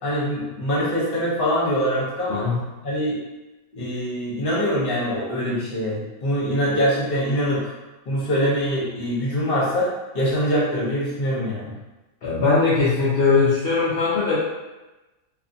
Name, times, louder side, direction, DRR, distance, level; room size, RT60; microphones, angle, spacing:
voice 1, 0.0-2.5 2.8-3.2 3.7-7.7 8.1-11.7, equal, 45° left, -6 dB, 0.8 m, -24 dB
voice 2, 2.3-2.6 12.2-14.4, left 4 dB, 90° left, -8 dB, 0.5 m, -20 dB
2.4 x 2.4 x 2.5 m, 1.1 s
omnidirectional pair, 1.7 m